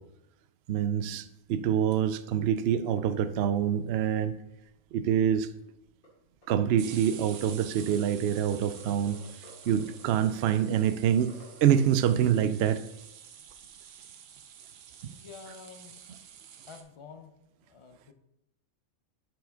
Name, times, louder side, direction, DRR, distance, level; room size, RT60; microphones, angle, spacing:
voice 1, 0.7-4.4 4.9-5.5 6.5-9.2 9.7-11.3 11.6-12.8, right 9 dB, 70° right, 10 dB, 0.6 m, -26 dB
sound 1, 1.6-2.5 2.7-2.8 3.0-3.1 3.3-3.9 4.2-4.3 4.6-4.9 5.8-5.9 6.7-16.8, right 8 dB, 90° right, 1.2 m, -49 dB
sound 2, 6.0-6.1 6.4-6.9 7.3-7.4 7.6-8.0 8.3-11.8, left 1 dB, 75° left, 2.6 m, -53 dB
voice 2, 15.0-16.0 16.7-17.3 17.7-18.1, left 5 dB, 55° left, 7 dB, 0.3 m, -48 dB
7.1 x 5.9 x 3.8 m, 0.84 s
omnidirectional pair, 1.5 m